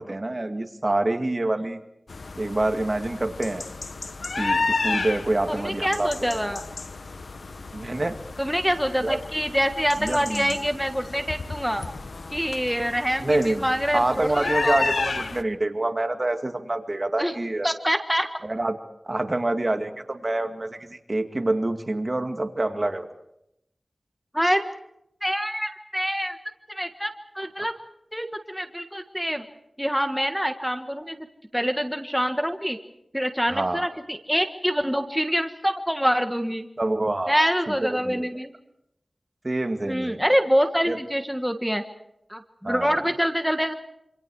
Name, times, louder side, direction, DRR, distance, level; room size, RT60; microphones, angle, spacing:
voice 1, 0.0-1.8 2.4-3.7 4.4-6.4 7.7-8.1 9.0-9.2 10.0-10.6 13.2-13.7 13.9-17.7 18.4-18.8 19.1-23.1 33.5-33.9 36.8-37.4 37.7-38.3 39.4-40.2 40.9-41.0 42.6-42.9, right 2 dB, 40° right, 6 dB, 2.2 m, -26 dB
sound 1, 2.1-15.4, left 3 dB, 80° left, 1.1 m, -32 dB
voice 2, 5.5-6.6 8.4-11.9 12.3-14.8 17.2-17.3 17.6-18.3 24.3-24.6 25.2-26.4 26.7-27.7 28.1-29.5 29.8-31.2 31.5-32.8 33.1-36.7 37.3-38.5 39.9-41.8 42.3-43.7, equal, ahead, 6 dB, 1.6 m, -25 dB
27.0 x 26.5 x 4.9 m, 0.79 s
wide cardioid pair, 65°, 0 cm